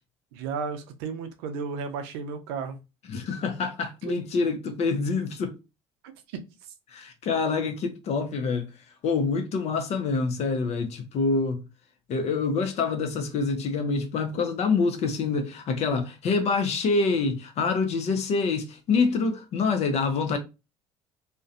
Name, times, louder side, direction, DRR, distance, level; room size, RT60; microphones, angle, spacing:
voice 1, 0.3-2.8 4.1-4.2 6.3-6.4, right 5 dB, 80° right, 0.5 m, -33 dB
voice 2, 3.1-5.5 6.9-8.7 9.0-11.6 12.1-20.4, left 4 dB, 55° left, 0.6 m, -26 dB
2.4 x 2.2 x 2.4 m
hypercardioid pair, 70°, 14 cm